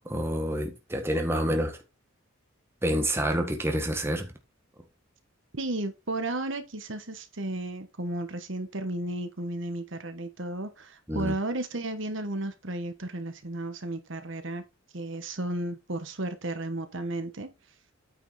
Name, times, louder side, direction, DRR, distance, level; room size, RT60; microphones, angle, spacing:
voice 1, 0.0-1.8 2.8-4.3 11.1-11.3, equal, 10° right, 1.4 m, -28 dB
voice 2, 5.5-14.6 14.9-17.5, right 2 dB, 60° right, 1.2 m, -33 dB
9.0 x 5.5 x 4.2 m
head